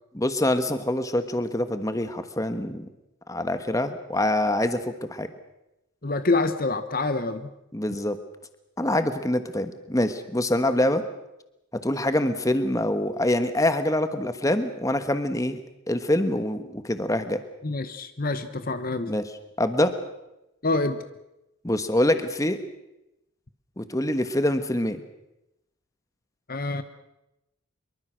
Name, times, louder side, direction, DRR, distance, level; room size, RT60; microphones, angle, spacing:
voice 1, 0.2-2.9 3.3-4.8 5.1-5.3 7.7-8.2 8.8-11.0 11.8-15.6 15.9-17.4 19.1-19.2 19.6-19.9 21.6-22.6 23.8-25.0, left 1 dB, 15° left, 9 dB, 1.3 m, -25 dB
voice 2, 6.0-7.5 17.6-19.2 20.6-21.1 26.5-26.8, left 3 dB, 40° left, 11 dB, 1.0 m, -26 dB
25.0 x 23.0 x 6.4 m, 0.90 s
head